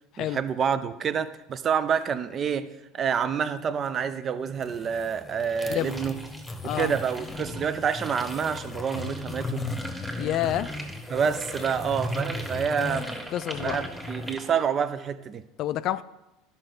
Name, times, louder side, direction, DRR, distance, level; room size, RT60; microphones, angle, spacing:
voice 1, 0.2-6.2 6.6-9.6 11.1-13.3 13.6-15.4, right 7 dB, 40° right, 0.6 m, -28 dB
sound 1, 4.5-14.4, left 2 dB, 20° left, 1.0 m, -36 dB
sound 2, 5.5-14.6, right 1 dB, 10° right, 1.7 m, -42 dB
voice 2, 5.7-6.0 6.6-6.9 10.2-10.7 13.3-13.8 15.6-16.0, left 13 dB, 55° left, 0.3 m, -28 dB
12.0 x 5.6 x 3.9 m
hypercardioid pair, 75°, 0 cm